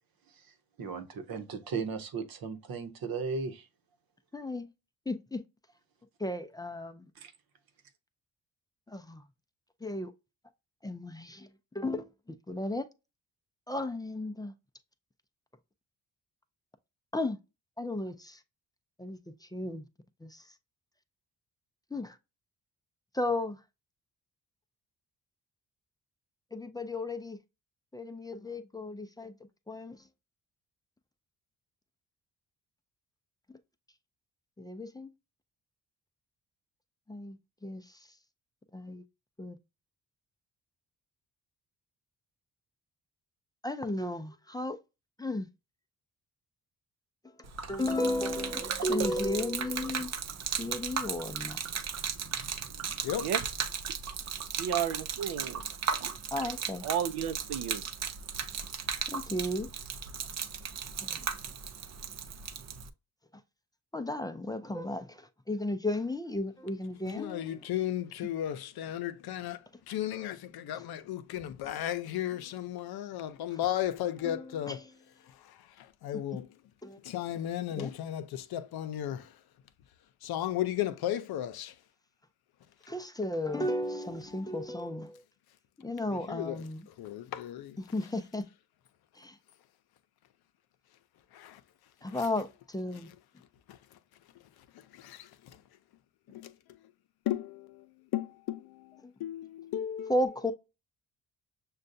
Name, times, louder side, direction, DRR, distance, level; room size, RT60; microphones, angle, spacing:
voice 1, 0.3-3.7 7.1-7.3, right 5 dB, 70° right, 0.9 m, -37 dB
voice 2, 5.1-5.4 6.2-7.0 8.9-9.2 9.8-10.1 10.8-11.5 11.7-12.0 12.5-12.9 13.7-14.5 17.1-17.4 17.8-18.4 19.0-19.2 19.5-19.8 20.2-20.4 21.9-22.1 23.1-23.6 26.5-27.4 27.9-29.3 29.7-30.0 34.6-35.1 37.1-37.4 37.6-37.8 38.7-39.0 39.4-39.6 43.6-44.8 45.2-45.5 47.7-50.1 50.6-51.6 56.3-56.8 59.1-59.7 61.0-61.2 63.9-67.6 74.3-74.4 76.8-77.0 77.8-77.9 82.9-85.2 85.8-86.8 87.9-88.5 89.2-89.3 92.0-93.1 99.0-99.1 100.1-100.5, left 1 dB, 10° left, 0.4 m, -34 dB
Gurgling / Liquid, 47.4-62.9, right 7 dB, 45° right, 0.5 m, -36 dB
voice 3, 54.6-55.6 56.8-57.8, right 8 dB, 85° right, 0.6 m, -32 dB
voice 4, 67.0-74.9 75.2-76.6 77.0-79.4 80.2-81.8 86.1-88.1 91.3-91.6 92.1-92.3 92.9-93.2 93.7-94.0 94.6-95.6 96.3-96.5 97.3-100.3, left 12 dB, 80° left, 0.6 m, -35 dB
6.5 x 2.3 x 2.6 m
cardioid pair, 95°, 37 cm